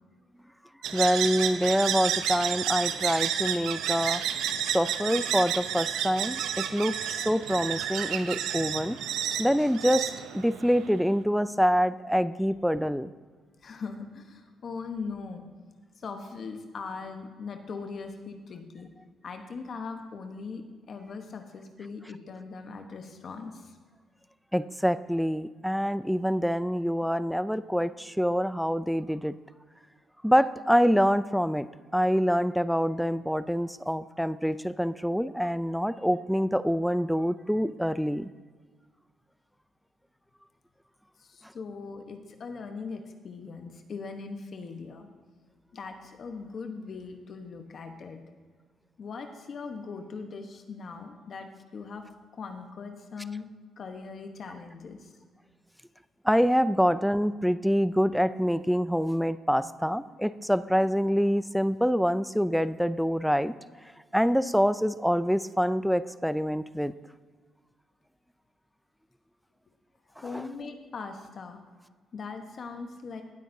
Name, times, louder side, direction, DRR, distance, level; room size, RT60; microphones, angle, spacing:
sound 1, 0.8-11.0, right 9 dB, 85° right, 0.6 m, -31 dB
voice 1, 0.9-4.2 4.6-9.0 9.4-13.1 24.5-29.3 30.2-31.7 31.9-38.3 56.2-63.5 64.1-66.9 70.3-70.5, equal, ahead, 15 dB, 0.3 m, -26 dB
voice 2, 13.6-15.4 16.0-18.9 19.2-20.6 20.9-23.8 41.2-45.1 45.7-48.2 49.0-52.0 52.3-53.5 53.8-55.1 70.2-71.6 72.1-73.2, left 4 dB, 50° left, 5 dB, 1.0 m, -40 dB
17.5 x 8.4 x 2.7 m, 1.5 s
cardioid pair, 90°, 0 cm